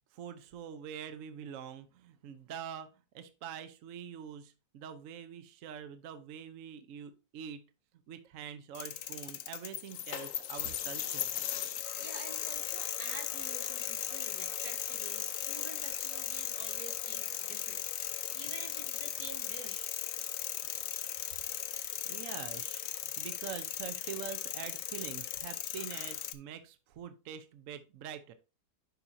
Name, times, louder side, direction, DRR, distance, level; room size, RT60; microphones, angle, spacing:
voice 1, 0.1-2.9 3.1-7.6 8.1-11.3 22.1-28.3, right 8 dB, 65° right, 1.0 m, -45 dB
sound 1, 8.7-26.3, left 10 dB, 65° left, 0.9 m, -37 dB
voice 2, 12.0-19.9, right 4 dB, 80° right, 1.9 m, -49 dB
11.0 x 4.3 x 2.6 m
omnidirectional pair, 1.7 m